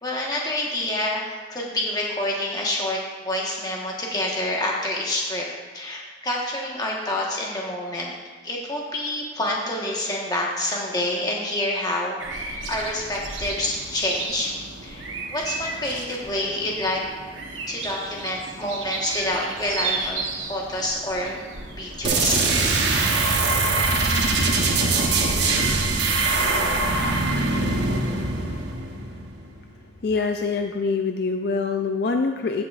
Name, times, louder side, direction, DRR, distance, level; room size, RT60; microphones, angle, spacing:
voice 1, 0.0-3.0 3.2-5.4 5.7-8.1 8.4-12.4 12.7-14.5 14.8-17.0 17.7-21.4 21.8-22.5, left 1 dB, 20° left, -3 dB, 1.3 m, -27 dB
sound 1, 12.2-26.9, right 4 dB, 85° right, 1.1 m, -35 dB
sound 2, 22.0-29.6, right 3 dB, 65° right, 1.0 m, -22 dB
voice 2, 30.0-32.6, left 4 dB, 55° left, 5 dB, 0.4 m, -24 dB
15.5 x 6.0 x 2.5 m, 1.4 s
head